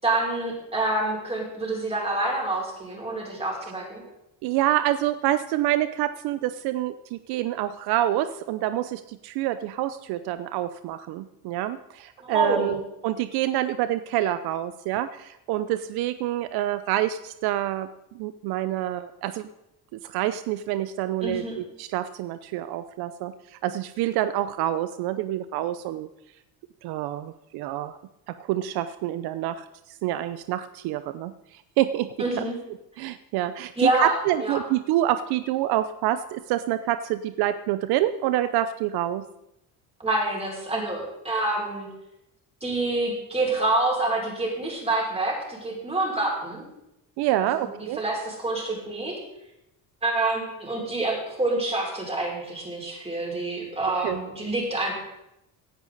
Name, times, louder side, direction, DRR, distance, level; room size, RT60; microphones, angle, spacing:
voice 1, 0.0-4.0 12.2-12.8 21.2-21.6 32.2-32.6 33.8-34.6 40.0-41.9 42.6-46.6 47.4-49.2 50.0-54.9, right 2 dB, 15° right, -2 dB, 5.5 m, -27 dB
voice 2, 4.4-17.9 18.1-19.5 19.9-26.1 26.8-28.0 28.4-32.4 33.0-39.2 47.2-48.0 54.0-54.2, right 13 dB, 75° right, 12 dB, 0.7 m, -27 dB
17.5 x 10.0 x 4.0 m, 0.87 s
cardioid pair, 105°, 38 cm